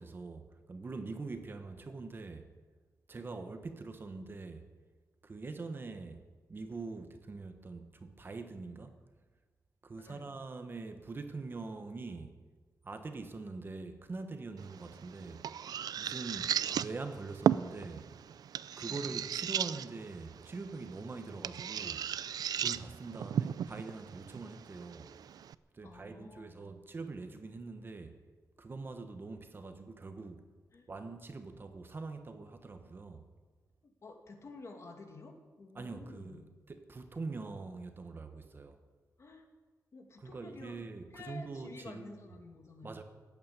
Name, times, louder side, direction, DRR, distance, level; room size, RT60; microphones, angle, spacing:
voice 1, 0.0-2.5 3.1-4.7 5.2-9.0 9.8-12.3 12.8-15.5 16.0-18.1 18.8-22.1 22.6-25.1 25.7-28.2 28.6-30.5 30.9-33.3 35.7-38.8 40.2-42.2 42.8-43.0, right 3 dB, 35° right, 1.2 m, -43 dB
voice 2, 10.0-10.3 18.8-19.1 25.8-26.6 30.7-30.9 34.0-36.5 39.2-39.5 39.9-40.8 41.1-43.0, left 3 dB, 45° left, 2.2 m, -51 dB
sound 1, 14.6-25.5, right 9 dB, 90° right, 0.4 m, -36 dB
16.0 x 8.8 x 9.7 m
wide cardioid pair, 155°, 6 cm